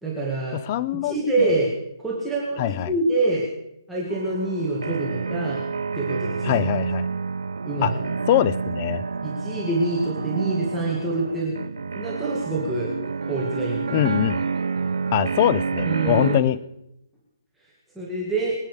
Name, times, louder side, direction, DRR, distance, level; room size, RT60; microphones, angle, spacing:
voice 1, 0.0-0.6 0.9-1.8 2.0-3.4 3.9-5.7 6.0-6.7 7.6-7.9 9.2-11.5 12.0-12.9 13.2-14.1 15.8-16.5 18.0-18.5, right 2 dB, ahead, -7 dB, 2.0 m, -26 dB
voice 2, 0.5-1.5 2.6-2.9 6.4-7.1 7.8-7.9 8.3-9.0 13.9-14.4 15.1-16.6, left 13 dB, 20° left, 18 dB, 0.5 m, -23 dB
sound 1, 4.1-16.4, right 5 dB, 80° right, 0.8 m, -28 dB
24.0 x 9.1 x 4.9 m, 0.83 s
hypercardioid pair, 170°, 2 cm